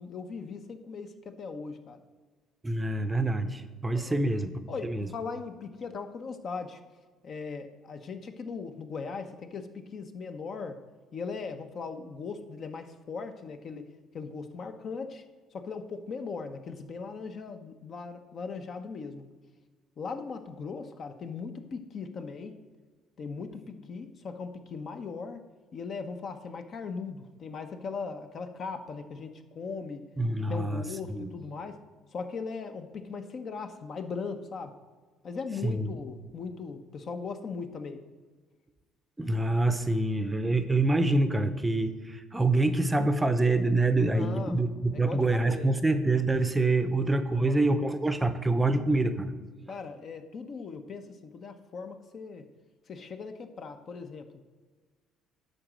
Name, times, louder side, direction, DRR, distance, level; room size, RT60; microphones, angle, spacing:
voice 1, 0.0-2.0 3.9-4.2 4.7-6.8 7.2-10.8 11.1-13.9 14.1-15.2 15.5-19.3 20.0-22.6 23.2-25.4 25.7-30.1 30.5-31.8 32.1-34.8 35.2-38.0 44.1-45.8 46.8-46.9 47.3-47.6 49.7-52.5 52.9-54.3, left 5 dB, 45° left, 7 dB, 0.8 m, -39 dB
voice 2, 2.6-5.1 30.2-30.8 31.1-31.3 35.6-35.9 39.2-49.3, right 2 dB, 10° right, 10 dB, 0.7 m, -26 dB
11.0 x 4.0 x 7.6 m, 1.4 s
cardioid pair, 125°, 0 cm